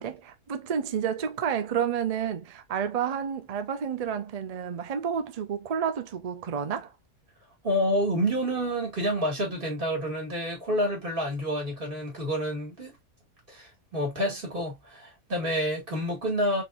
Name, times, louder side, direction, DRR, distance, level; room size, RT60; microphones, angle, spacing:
voice 1, 0.0-6.9, right 7 dB, 65° right, 0.3 m, -30 dB
voice 2, 7.6-13.0 13.5-16.6, equal, 40° right, 2.3 m, -28 dB
4.2 x 3.7 x 2.4 m
omnidirectional pair, 1.4 m